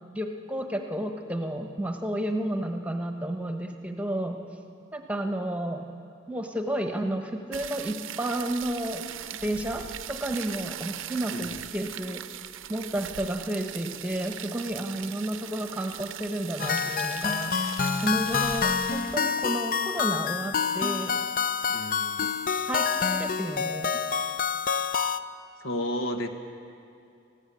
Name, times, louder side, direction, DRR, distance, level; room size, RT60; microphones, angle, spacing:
voice 1, 0.1-4.4 4.9-5.8 6.3-9.0 9.4-9.8 10.1-12.2 12.7-17.5 18.0-21.2 22.6-23.9, right 1 dB, 5° right, 4 dB, 1.1 m, -31 dB
sound 1, 7.5-19.2, right 10 dB, 80° right, 0.7 m, -40 dB
voice 2, 11.3-11.7 21.7-22.3 25.6-26.3, left 1 dB, 80° left, 6 dB, 1.4 m, -32 dB
sound 2, 16.6-25.2, left 6 dB, 45° left, 0.5 m, -27 dB
20.0 x 16.0 x 8.2 m, 2.6 s
head